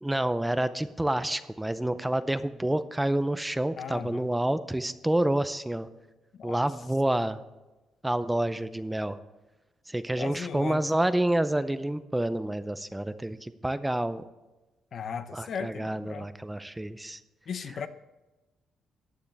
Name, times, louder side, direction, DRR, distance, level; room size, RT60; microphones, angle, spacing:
voice 1, 0.0-5.9 6.4-7.4 8.0-9.2 9.9-14.2 15.3-17.2, right 1 dB, 10° right, 12 dB, 0.6 m, -28 dB
voice 2, 3.8-4.3 6.4-6.6 10.2-10.8 14.9-16.3 17.5-17.9, left 6 dB, 60° left, 11 dB, 0.7 m, -37 dB
14.5 x 9.3 x 3.4 m, 1.1 s
cardioid pair, 90°, 0 cm